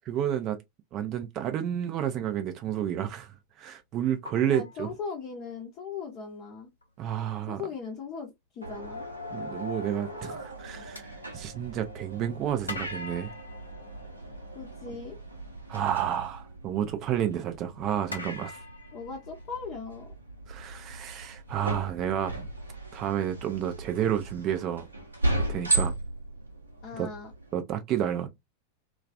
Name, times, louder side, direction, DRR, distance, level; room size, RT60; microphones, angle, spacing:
voice 1, 0.1-0.6 0.9-4.9 7.0-7.6 9.3-13.3 15.7-18.6 20.5-22.5 22.9-24.9 25.5-25.9 27.0-27.1 27.5-28.3, right 10 dB, 35° right, 0.4 m, -30 dB
sound 1, 3.3-3.4 4.3-5.6 6.8-6.9 7.3-7.6 11.0-12.1 12.7-14.8 18.1-19.9, left 2 dB, 80° left, 0.5 m, -42 dB
voice 2, 4.3-6.7 7.5-9.0 14.5-15.2 18.9-20.1 26.8-27.3, left 5 dB, 40° left, 0.6 m, -38 dB
sound 2, 8.6-27.5, right 1 dB, 85° right, 0.8 m, -36 dB
2.3 x 2.2 x 2.3 m
figure-of-eight pair, 90°, 0 cm